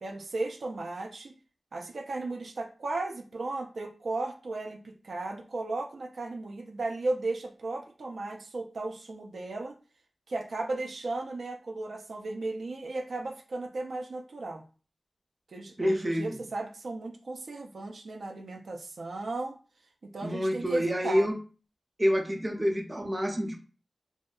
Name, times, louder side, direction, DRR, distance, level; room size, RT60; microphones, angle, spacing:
voice 1, 0.0-1.3 1.7-9.8 10.3-14.6 15.5-19.6 20.0-21.3, right 2 dB, 85° right, 2 dB, 0.4 m, -35 dB
voice 2, 15.8-16.4 20.2-21.3 22.0-23.6, equal, 25° right, 2 dB, 0.5 m, -27 dB
2.6 x 2.2 x 2.3 m, 0.36 s
wide cardioid pair, 60°, 0 cm